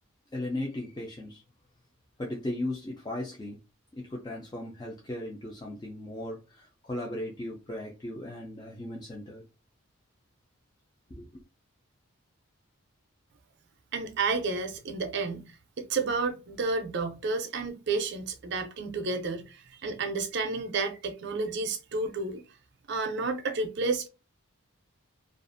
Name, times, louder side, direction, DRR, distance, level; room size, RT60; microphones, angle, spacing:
voice 1, 0.3-1.4 2.2-3.6 3.9-9.4 11.1-11.3, left 1 dB, 20° left, 0.4 m, -37 dB
voice 2, 13.9-22.4 22.9-24.1, right 3 dB, 50° right, 0.5 m, -31 dB
2.5 x 2.4 x 2.5 m
head